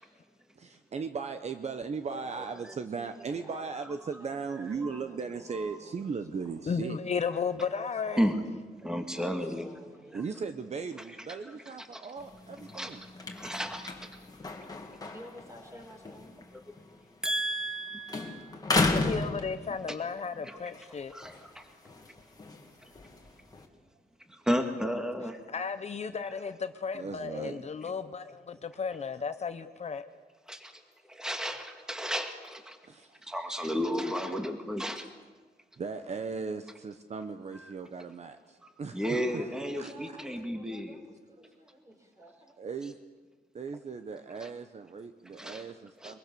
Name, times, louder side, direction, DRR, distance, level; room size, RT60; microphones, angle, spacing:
voice 1, 0.6-7.0 10.1-13.0 23.1-23.3 26.9-27.6 32.8-33.3 33.6-33.7 35.8-39.0 39.8-40.2 42.6-43.0 43.5-46.2, right 5 dB, 45° right, 1.0 m, -38 dB
voice 2, 2.1-6.5 7.7-8.3 9.1-10.2 15.1-16.4 18.3-18.6 39.0-42.7, equal, 20° right, 4.7 m, -52 dB
voice 3, 6.7-8.3 18.8-21.1 25.5-30.0, left 5 dB, 45° left, 0.9 m, -34 dB
voice 4, 8.8-9.7 10.1-10.2 11.3-12.0 12.7-13.0 13.3-14.0 15.0-15.1 16.7-16.8 17.2-18.5 19.9-20.0 20.4-20.6 21.1-21.6 24.3-25.4 30.5-30.8 31.1-32.8 33.2-35.1 37.6-37.7 38.6-41.0 44.4-44.5 45.3-45.7 46.0-46.2, equal, 5° right, 2.2 m, -33 dB
sound 1, 12.2-17.8 18.1-20.1 20.6-23.7, left 3 dB, 25° left, 2.4 m, -35 dB
23.0 x 22.5 x 6.9 m
wide cardioid pair, 125°, 16 cm